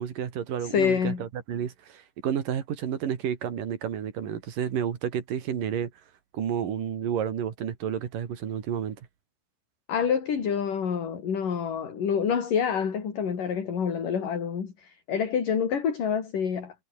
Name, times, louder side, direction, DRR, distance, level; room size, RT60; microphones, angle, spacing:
voice 1, 0.0-5.9 6.3-9.0, right 9 dB, 50° right, 3.5 m, -31 dB
voice 2, 0.6-1.2 9.9-16.7, left 7 dB, 45° left, 4.9 m, -27 dB
omnidirectional pair, 5.7 m